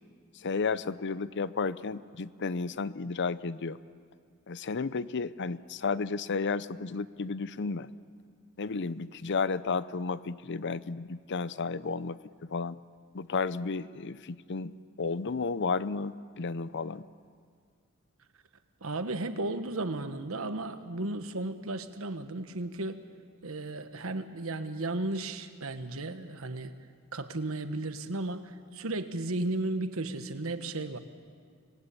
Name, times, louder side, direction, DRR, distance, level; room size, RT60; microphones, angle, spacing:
voice 1, 0.3-3.8 4.5-7.9 8.6-12.8 13.1-17.1, left 4 dB, 55° left, 16 dB, 0.6 m, -33 dB
voice 2, 18.8-23.0 23.4-26.7 27.1-31.0, right 2 dB, 75° right, 9 dB, 1.3 m, -34 dB
26.0 x 20.0 x 8.5 m, 2.1 s
head